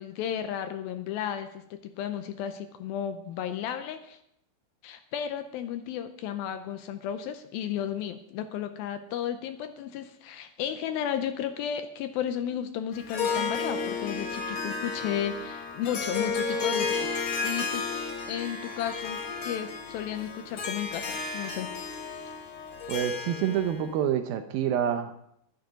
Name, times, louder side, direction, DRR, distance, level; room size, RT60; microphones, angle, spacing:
voice 1, 0.0-4.2 4.8-21.7 22.1-22.2, left 9 dB, 80° left, 9 dB, 2.3 m, -34 dB
Harp, 12.9-23.9, left 4 dB, 50° left, 3.2 m, -32 dB
voice 2, 22.9-25.2, right 9 dB, 80° right, 8 dB, 2.2 m, -27 dB
12.0 x 11.0 x 5.1 m, 0.76 s
omnidirectional pair, 4.6 m